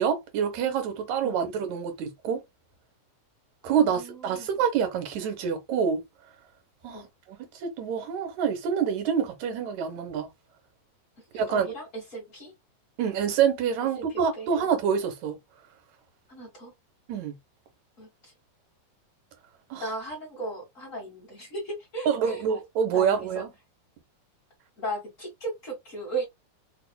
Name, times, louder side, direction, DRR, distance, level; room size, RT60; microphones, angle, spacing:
voice 1, 0.0-2.4 3.6-6.0 6.8-10.3 11.3-11.7 13.0-15.4 17.1-17.4 19.7-19.8 22.1-23.5, right 7 dB, 75° right, 2.2 m, -27 dB
voice 2, 1.2-1.5 3.7-4.5 6.9-7.1 11.3-12.5 14.0-14.5 16.3-16.7 18.0-18.3 19.7-22.5 22.9-23.4 24.8-26.2, right 2 dB, 40° left, 1.2 m, -36 dB
4.6 x 2.4 x 2.2 m
omnidirectional pair, 3.4 m